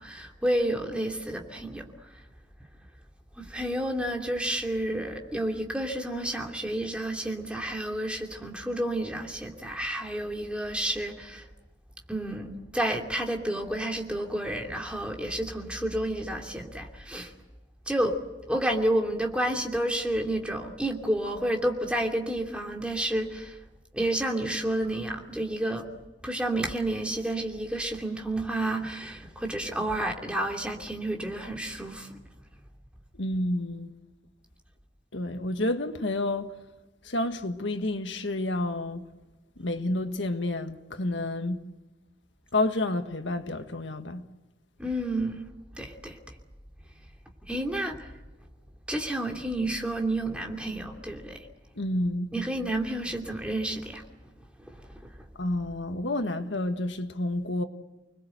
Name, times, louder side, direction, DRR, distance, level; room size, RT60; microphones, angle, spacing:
voice 1, 0.0-1.9 3.4-11.5 12.1-17.3 17.9-18.2 18.5-23.6 23.9-25.9 26.2-32.2 44.8-45.4 45.8-46.2 47.5-48.1 48.9-51.5 52.3-54.0 54.6-54.8 55.0-55.3, right 1 dB, 5° right, 2.8 m, -30 dB
voice 2, 33.1-33.9 35.1-36.6 37.0-39.1 39.6-41.6 42.5-44.3 51.8-52.3 55.4-57.6, left 1 dB, 75° left, 1.6 m, -29 dB
30.0 x 21.0 x 7.9 m
head